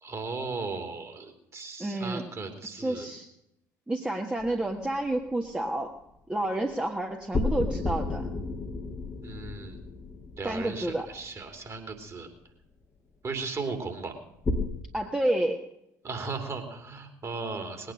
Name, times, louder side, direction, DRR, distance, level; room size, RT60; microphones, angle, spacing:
voice 1, 0.0-3.1 9.2-9.8 10.4-12.3 13.2-14.1 16.0-17.9, right 4 dB, 35° right, 5 dB, 3.1 m, -36 dB
voice 2, 1.8-2.2 2.7-3.3 3.9-5.9 6.3-8.3 10.4-11.1 14.9-15.6, right 1 dB, 10° right, 2 dB, 1.4 m, -29 dB
sound 1, 4.4-5.3 7.3-11.7 14.4-14.7, left 3 dB, 30° left, 1.5 m, -32 dB
20.0 x 9.2 x 6.4 m, 0.82 s
figure-of-eight pair, 55°, 9 cm